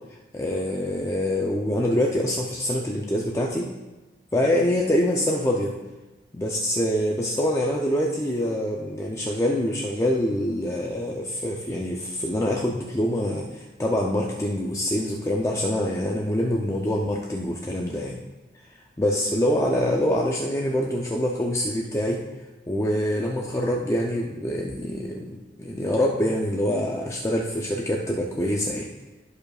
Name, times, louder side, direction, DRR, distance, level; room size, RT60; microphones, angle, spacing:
voice 1, 0.3-3.7 4.3-5.8 6.3-18.2 18.7-22.2 22.7-28.9, left 1 dB, 15° left, -2 dB, 0.5 m, -25 dB
15.5 x 5.2 x 2.4 m, 1.1 s
head